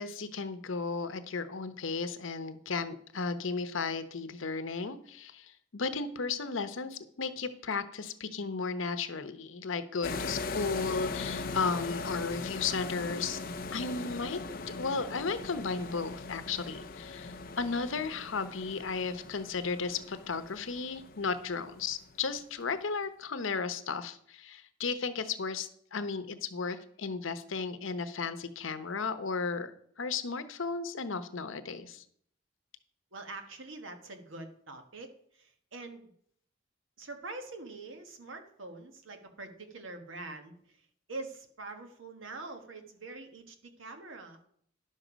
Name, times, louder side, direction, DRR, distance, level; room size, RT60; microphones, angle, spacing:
voice 1, 0.0-13.4 13.7-14.4 14.7-29.7 30.0-32.0, left 4 dB, 85° left, 11 dB, 0.8 m, -34 dB
sound 1, 10.0-22.1, left 3 dB, 45° left, 0.6 m, -40 dB
voice 2, 33.1-36.1 37.0-44.4, right 3 dB, 85° right, 6 dB, 1.4 m, -45 dB
10.5 x 6.6 x 5.0 m, 0.65 s
head